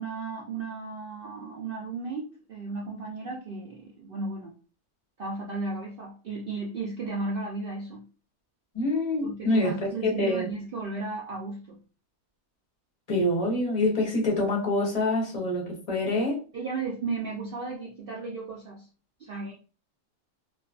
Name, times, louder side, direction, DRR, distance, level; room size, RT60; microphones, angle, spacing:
voice 1, 0.0-4.5 5.2-8.0 9.2-11.8 16.5-18.9 19.2-19.5, right 3 dB, 70° right, -3 dB, 0.5 m, -34 dB
voice 2, 8.7-10.5 13.1-16.4, left 2 dB, 35° left, -2 dB, 0.6 m, -26 dB
2.5 x 2.3 x 2.3 m, 0.36 s
omnidirectional pair, 1.5 m